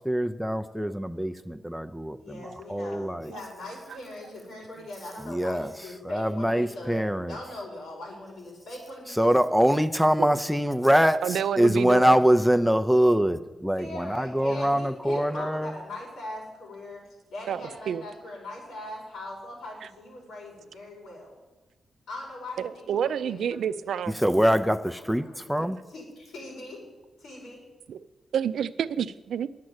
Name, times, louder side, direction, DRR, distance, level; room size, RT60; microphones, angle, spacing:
voice 1, 0.0-3.3 5.2-5.7 6.0-7.4 9.1-15.8 24.1-25.8, equal, ahead, 10 dB, 0.4 m, -24 dB
voice 2, 2.2-9.5 13.8-17.0 17.3-21.3 22.1-23.8 25.0-26.8 27.2-27.6, left 1 dB, 90° left, -1 dB, 5.0 m, -41 dB
voice 3, 11.2-12.2 17.5-18.0 22.6-24.2 27.9-28.0 28.3-29.5, right 8 dB, 85° right, 12 dB, 0.5 m, -29 dB
10.5 x 7.5 x 7.9 m, 1.2 s
wide cardioid pair, 140°, 0 cm